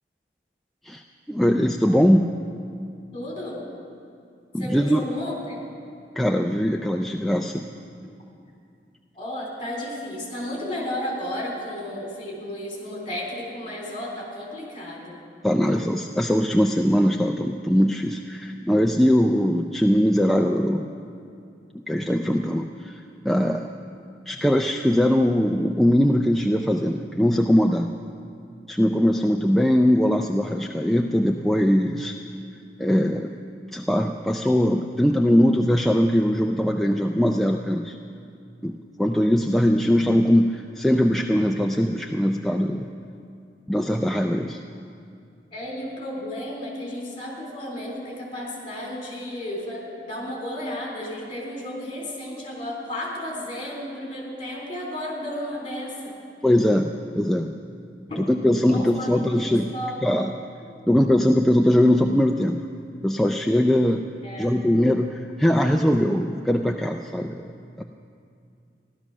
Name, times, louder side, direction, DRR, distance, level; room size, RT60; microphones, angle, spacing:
voice 1, 1.3-2.3 4.5-5.0 6.2-7.7 15.4-20.9 21.7-23.7 24.3-27.9 28.7-32.1 32.8-33.3 33.7-38.0 38.6-42.9 43.7-44.6 56.4-56.9 57.2-57.5 58.2-59.7 60.0-60.3 60.9-62.6 63.0-64.0 64.4-67.5 67.8-67.9, equal, ahead, 2 dB, 0.4 m, -21 dB
voice 2, 3.1-3.6 4.6-5.7 9.1-15.2 45.5-56.1 58.1-58.2 58.7-60.0 60.7-60.8 64.2-64.6, left 1 dB, 30° left, -2 dB, 3.6 m, -33 dB
15.5 x 12.0 x 6.1 m, 2.4 s
head